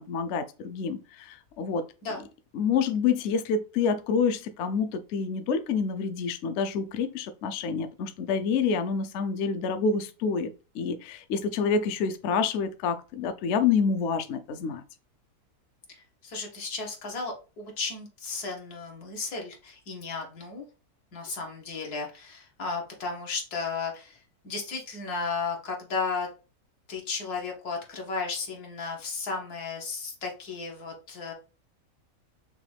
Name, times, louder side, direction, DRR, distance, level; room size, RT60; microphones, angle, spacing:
voice 1, 0.0-1.8 2.5-14.8, left 5 dB, 65° left, 0.7 m, -28 dB
voice 2, 16.2-20.6 21.1-24.2 24.4-26.3 26.9-31.3, left 4 dB, 80° left, 1.8 m, -34 dB
5.8 x 2.3 x 3.3 m
omnidirectional pair, 1.6 m